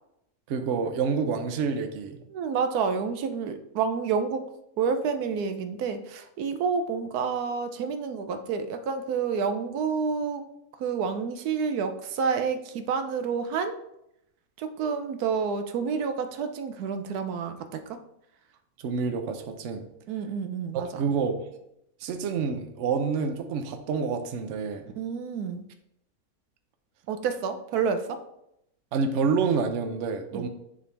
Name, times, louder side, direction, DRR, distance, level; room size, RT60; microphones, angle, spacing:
voice 1, 0.5-2.2 18.8-19.9 21.0-21.5 22.0-24.9 28.9-30.5, right 5 dB, 60° right, 6 dB, 0.9 m, -28 dB
voice 2, 2.3-4.5 4.8-10.4 10.8-13.8 14.6-18.0 20.1-21.0 25.0-25.6 27.1-28.2 30.3-30.5, right 6 dB, 85° right, 8 dB, 1.1 m, -29 dB
9.7 x 3.4 x 3.3 m, 0.80 s
omnidirectional pair, 1.6 m